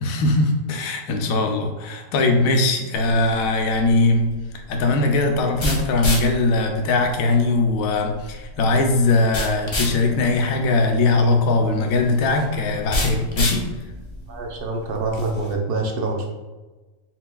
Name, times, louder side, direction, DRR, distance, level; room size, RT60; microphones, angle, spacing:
voice 1, 0.0-4.3 4.7-13.6, left 2 dB, 80° left, 3 dB, 1.0 m, -20 dB
sound 1, 2.9-15.5, left 1 dB, 45° left, 0.3 m, -31 dB
voice 2, 14.3-16.3, right 3 dB, 55° right, 1 dB, 0.7 m, -26 dB
4.4 x 3.6 x 2.2 m, 1.2 s
omnidirectional pair, 1.4 m